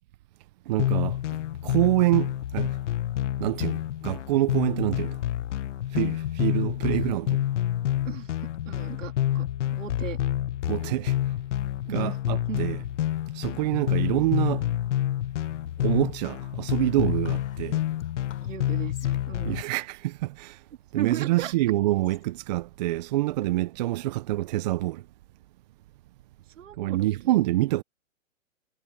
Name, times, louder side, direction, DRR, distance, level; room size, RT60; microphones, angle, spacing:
voice 1, 0.7-2.8 3.4-5.2 5.9-7.4 10.7-11.2 11.9-12.8 13.3-14.7 15.8-17.8 19.4-20.6 20.9-25.0 26.8-27.8, right 17 dB, 35° right, 0.6 m, -26 dB
sound 1, 0.8-19.6, left 12 dB, 60° left, 1.1 m, -28 dB
voice 2, 8.7-10.2 11.9-12.1 12.5-12.7 18.4-19.5 20.9-21.5 24.0-24.2 26.6-27.3, right 11 dB, 65° right, 2.5 m, -36 dB
Whispering, 17.2-23.9, left 8 dB, 75° left, 4.3 m, -54 dB
hypercardioid pair, 140°, 40 cm